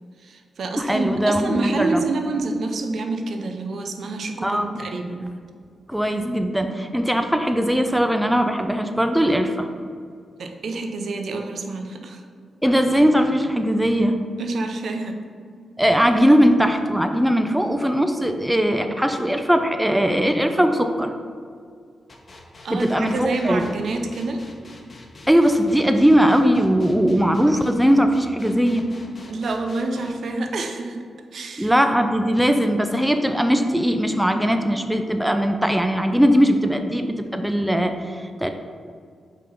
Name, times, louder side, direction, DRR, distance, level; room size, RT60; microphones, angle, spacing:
voice 1, 0.2-5.2 10.4-12.2 14.4-15.3 22.6-24.4 29.3-31.0 31.3-31.7, right 3 dB, 70° right, 4 dB, 0.6 m, -27 dB
voice 2, 0.8-2.0 4.4-4.8 5.9-9.7 12.6-14.2 15.8-21.1 22.7-23.6 25.3-28.8 31.6-38.5, equal, 5° right, 6 dB, 0.5 m, -19 dB
sound 1, 22.1-30.1, left 2 dB, 45° left, 1.0 m, -44 dB
5.4 x 3.7 x 5.3 m, 2.2 s
cardioid pair, 55°, 0 cm